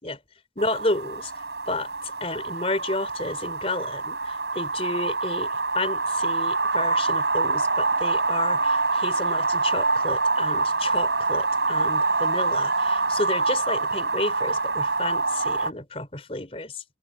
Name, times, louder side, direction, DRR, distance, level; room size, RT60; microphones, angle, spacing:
voice 1, 0.6-1.3 1.7-16.8, left 2 dB, 35° left, 4.4 m, -31 dB
sound 1, 0.6-15.7, right 3 dB, 70° right, 7.6 m, -25 dB
head